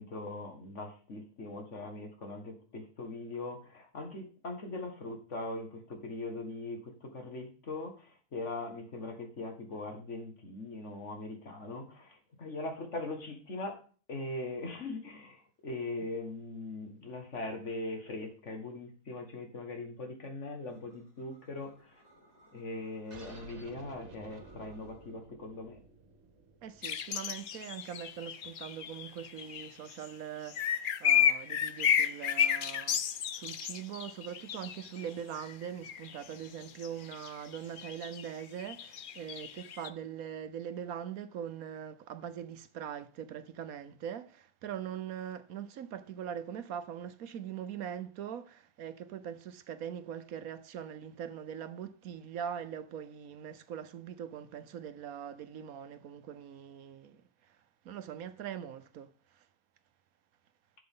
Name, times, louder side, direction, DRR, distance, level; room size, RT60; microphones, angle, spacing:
voice 1, 0.0-13.8 14.1-22.0 22.5-25.8, left 2 dB, 55° left, 2.0 m, -41 dB
sound 1, 20.6-23.5 24.0-25.2, equal, 35° left, 5.4 m, -63 dB
sound 2, 23.1-28.2, right 3 dB, 50° right, 1.8 m, -53 dB
voice 2, 26.6-33.0 33.3-57.6 57.8-59.5, right 9 dB, 75° right, 1.2 m, -42 dB
sound 3, 26.8-30.1 30.5-35.1 35.4-39.9, left 8 dB, 70° left, 0.4 m, -32 dB
11.5 x 7.0 x 3.7 m
omnidirectional pair, 1.5 m